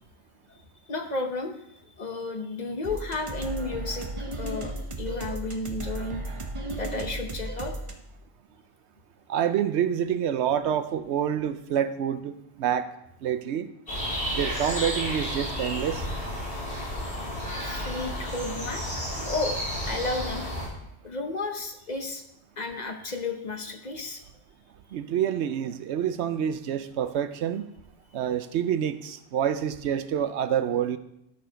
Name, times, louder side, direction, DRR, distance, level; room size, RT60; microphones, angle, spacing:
voice 1, 0.9-4.1 4.4-6.3 6.7-7.7 17.6-19.6 19.9-20.4 21.0-22.2 22.6-24.3, left 3 dB, 40° left, 5 dB, 1.0 m, -33 dB
sound 1, 2.8-7.9, right 1 dB, 30° right, 0.9 m, -35 dB
voice 2, 9.3-12.9 13.2-13.7 14.3-16.1 24.9-27.7 28.1-31.0, right 9 dB, 80° right, 12 dB, 0.9 m, -27 dB
sound 2, 13.9-20.7, equal, 70° left, 4.7 m, -32 dB
13.0 x 4.7 x 5.1 m, 0.79 s
omnidirectional pair, 1.1 m